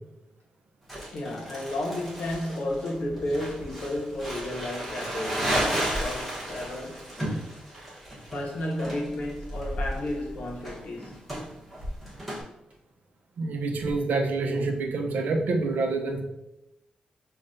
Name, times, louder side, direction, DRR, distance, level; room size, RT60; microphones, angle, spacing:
Crumpling crinkling, 0.9-12.4, right 1 dB, ahead, 1.0 m, -33 dB
voice 1, 1.1-7.1 8.3-11.2, left 1 dB, 65° left, 0.8 m, -32 dB
sound 1, 3.6-3.9 4.7-4.8 5.8-6.5 7.2-7.3 9.5-10.0 10.6-10.7 11.7-12.2 12.7-12.8 13.8-14.3, equal, 55° right, 0.8 m, -39 dB
voice 2, 13.4-16.2, right 3 dB, 85° right, 0.5 m, -27 dB
5.5 x 2.2 x 2.5 m
wide cardioid pair, 165°, 3 cm